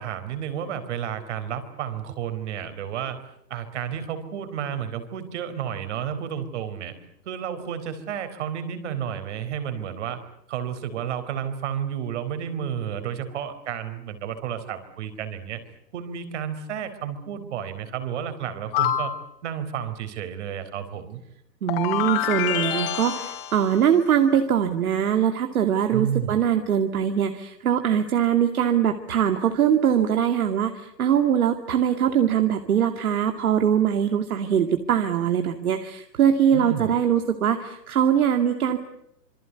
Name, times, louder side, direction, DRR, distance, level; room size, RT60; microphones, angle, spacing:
voice 1, 0.0-3.2 3.5-6.9 7.3-10.2 10.5-15.6 15.9-19.1 19.4-21.2 25.9-26.4 36.5-36.9, right 9 dB, 45° right, 10 dB, 4.2 m, -31 dB
sound 1, 18.7-19.2 21.7-23.8, left 11 dB, 35° left, 4.2 m, -26 dB
voice 2, 21.6-38.8, right 9 dB, 60° right, 6 dB, 2.4 m, -22 dB
27.5 x 23.0 x 8.2 m, 0.78 s
hypercardioid pair, 150°, 49 cm